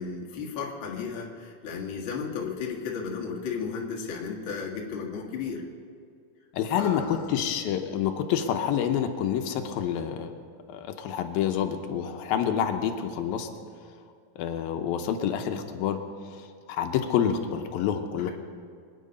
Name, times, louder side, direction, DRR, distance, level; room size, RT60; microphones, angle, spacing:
voice 1, 0.0-5.6 6.7-7.3 18.2-18.3, left 5 dB, 45° left, -2 dB, 1.9 m, -34 dB
voice 2, 6.5-10.3 10.7-13.5 14.4-16.0 16.3-18.3, left 9 dB, 85° left, 5 dB, 2.6 m, -28 dB
24.5 x 9.7 x 5.4 m, 2.2 s
omnidirectional pair, 4.2 m